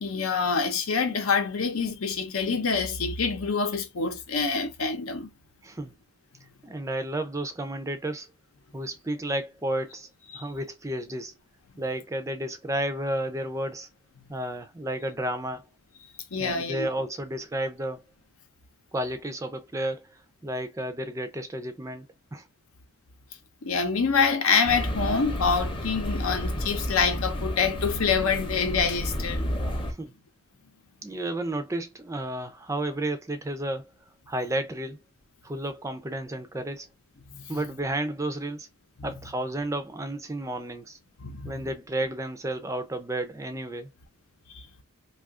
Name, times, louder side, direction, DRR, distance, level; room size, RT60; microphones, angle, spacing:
voice 1, 0.0-5.3 10.3-10.4 16.3-16.9 23.6-29.5 37.3-37.4 41.2-41.5 44.5-44.6, left 5 dB, 85° left, 0.7 m, -26 dB
voice 2, 5.6-5.9 6.6-8.3 8.7-10.1 10.3-11.3 11.8-13.9 14.3-15.6 16.4-18.0 18.9-22.1 22.3-22.4 30.0-30.1 31.0-33.9 34.3-35.0 35.4-36.9 37.5-38.7 39.0-41.0 41.4-43.9, right 1 dB, 15° right, 0.4 m, -32 dB
sound 1, 24.6-29.9, equal, 25° left, 0.7 m, -31 dB
2.7 x 2.4 x 3.5 m
head